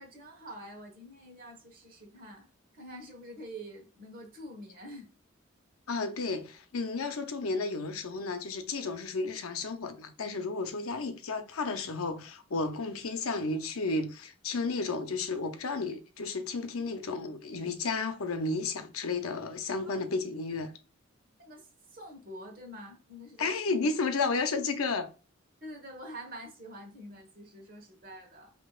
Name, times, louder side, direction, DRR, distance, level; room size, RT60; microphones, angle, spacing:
voice 1, 0.0-2.5 2.7-5.1 19.8-20.0 21.4-23.9 25.6-28.5, equal, 40° right, 1.3 m, -46 dB
voice 2, 5.9-20.7 23.4-25.1, left 3 dB, 90° left, 0.7 m, -32 dB
5.5 x 2.9 x 2.4 m
head